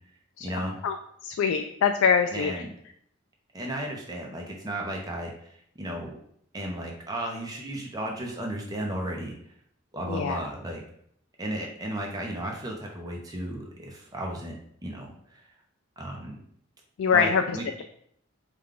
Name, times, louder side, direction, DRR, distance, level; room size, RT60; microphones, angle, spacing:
voice 1, 0.4-0.8 2.3-2.7 3.5-6.2 6.5-9.3 9.9-10.8 11.4-14.5 14.8-15.4 16.0-16.4 17.1-17.7, right 1 dB, 20° right, 0 dB, 0.6 m, -34 dB
voice 2, 1.2-2.5 10.1-10.4 17.0-17.4, left 6 dB, 85° left, 5 dB, 0.3 m, -23 dB
4.9 x 2.3 x 3.6 m, 0.67 s
head